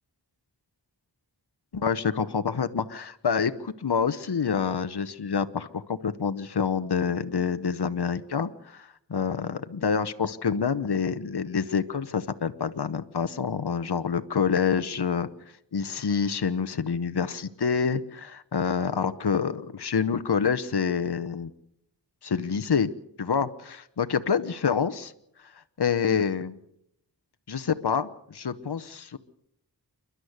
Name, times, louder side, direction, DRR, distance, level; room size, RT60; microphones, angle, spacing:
voice 1, 1.7-15.3 15.7-21.5 22.2-22.9 23.2-25.1 25.4-26.6 27.5-29.2, left 6 dB, 65° left, 11 dB, 1.0 m, -27 dB
28.5 x 11.5 x 8.1 m, 0.76 s
wide cardioid pair, 50°, 43 cm